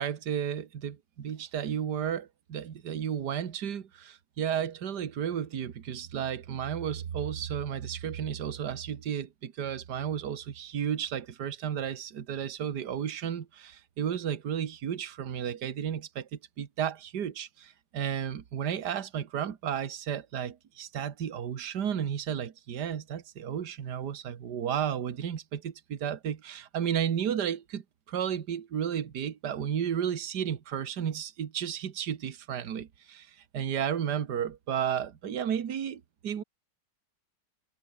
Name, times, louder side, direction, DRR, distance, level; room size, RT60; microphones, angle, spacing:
voice 1, 0.0-36.4, right 8 dB, 70° right, 2.0 m, -33 dB
omnidirectional pair, 1.9 m